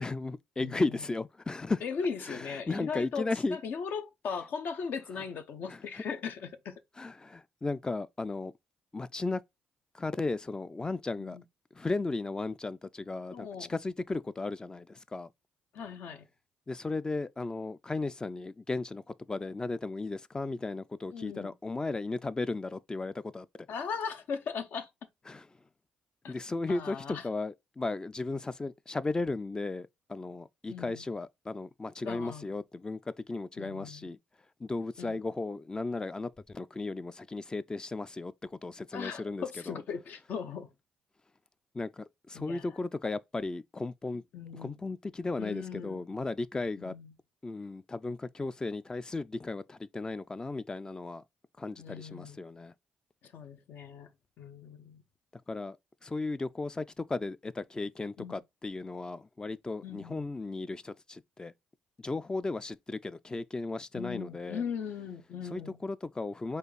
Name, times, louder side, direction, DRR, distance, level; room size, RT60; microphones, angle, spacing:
voice 1, 0.0-1.8 2.3-3.6 5.7-5.8 7.0-8.5 8.9-9.4 9.9-11.4 11.7-15.3 16.7-23.5 25.3-25.5 26.3-34.2 34.6-39.8 41.7-44.2 44.5-46.9 47.4-51.2 51.6-52.7 55.5-55.8 56.0-61.5 62.0-64.6 65.5-66.6, left 3 dB, 20° left, 0.3 m, -35 dB
voice 2, 0.6-1.0 1.8-6.7 11.2-11.4 13.3-13.7 15.7-16.3 21.1-21.5 23.7-24.9 26.2-26.3 26.7-27.3 30.7-31.1 32.0-32.5 33.6-34.1 35.0-35.2 38.9-40.7 42.3-42.7 44.3-44.8 45.4-46.0 46.8-47.1 51.8-52.4 53.2-54.1 54.4-55.0 58.2-58.4 59.8-60.2 63.9-65.8, left 6 dB, 65° left, 0.7 m, -38 dB
4.3 x 2.5 x 3.1 m
supercardioid pair, 60°, 3 cm